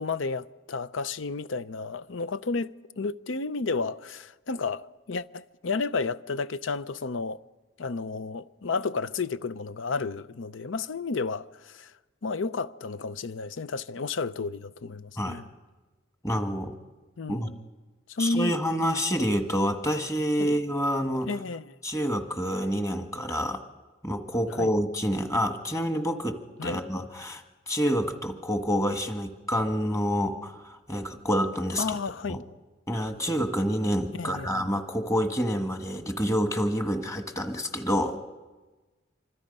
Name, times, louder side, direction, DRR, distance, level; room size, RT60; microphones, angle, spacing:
voice 1, 0.0-7.4 7.8-11.9 12.2-15.5 17.2-17.6 18.1-18.6 20.4-20.6 21.2-21.8 24.5-24.7 26.6-26.8 31.8-32.4 34.1-34.7, left 4 dB, 80° left, 0.6 m, -32 dB
voice 2, 16.2-16.8 17.3-17.5 18.2-21.3 21.8-23.6 24.0-31.8 32.3-32.4 32.9-38.2, equal, 15° left, 1.6 m, -28 dB
25.5 x 25.5 x 5.4 m
head